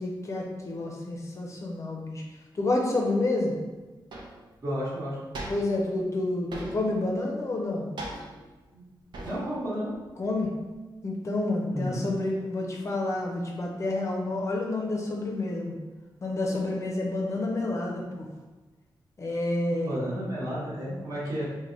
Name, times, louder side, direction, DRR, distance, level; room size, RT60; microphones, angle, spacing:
voice 1, 0.0-2.2 2.5-3.5 5.5-7.9 10.2-10.5 11.0-15.8 16.2-18.3 19.2-20.0, left 2 dB, 35° left, -1 dB, 0.5 m, -29 dB
sound 1, 3.4-3.5 4.1-4.5 5.3-5.9 6.5-7.0 8.0-8.5 9.1-9.6 9.9-10.8, right 1 dB, 65° right, 0.7 m, -40 dB
voice 2, 4.6-5.2 8.7-8.8 9.2-9.9 11.7-12.1 19.7-21.4, equal, 45° right, -9 dB, 1.1 m, -32 dB
3.3 x 2.1 x 3.7 m, 1.2 s
wide cardioid pair, 145°, 8 cm